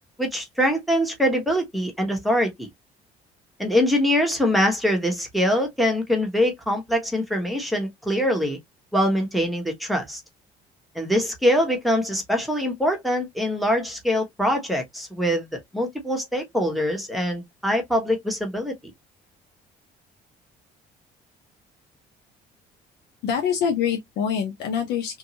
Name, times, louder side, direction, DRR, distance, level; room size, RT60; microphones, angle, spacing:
voice 1, 0.2-2.7 3.6-8.6 8.9-10.2 10.9-18.7, equal, ahead, 1.1 m, -23 dB
voice 2, 23.2-25.2, left 7 dB, 80° left, 0.9 m, -25 dB
3.0 x 2.7 x 2.7 m
cardioid pair, 110°, 17 cm